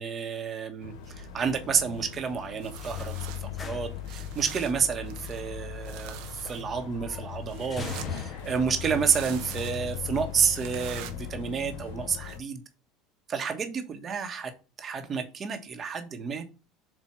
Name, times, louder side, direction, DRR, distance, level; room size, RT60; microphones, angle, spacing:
voice 1, 0.0-12.6 13.3-14.5 14.8-16.4, right 6 dB, 30° right, 1.3 m, -30 dB
sound 1, 0.8-12.4, left 9 dB, 80° left, 0.9 m, -39 dB
sound 2, 0.9-11.4, left 2 dB, 25° left, 1.1 m, -45 dB
sound 3, 2.6-12.4, right 11 dB, 70° right, 0.9 m, -47 dB
7.6 x 2.7 x 5.6 m
supercardioid pair, 115°, 0 cm